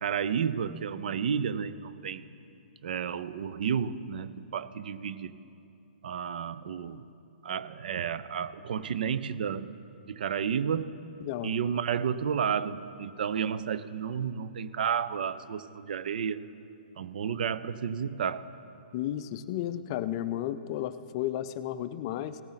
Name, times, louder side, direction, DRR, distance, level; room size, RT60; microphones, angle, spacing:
voice 1, 0.0-2.2 2.8-5.3 6.0-7.0 7.4-9.7 10.1-10.9 11.4-16.5 17.0-18.5, right 7 dB, 65° right, 15 dB, 0.5 m, -31 dB
voice 2, 11.2-11.5 18.9-22.4, left 12 dB, 35° left, 13 dB, 0.4 m, -33 dB
17.5 x 10.5 x 4.0 m, 2.7 s
hypercardioid pair, 155°, 5 cm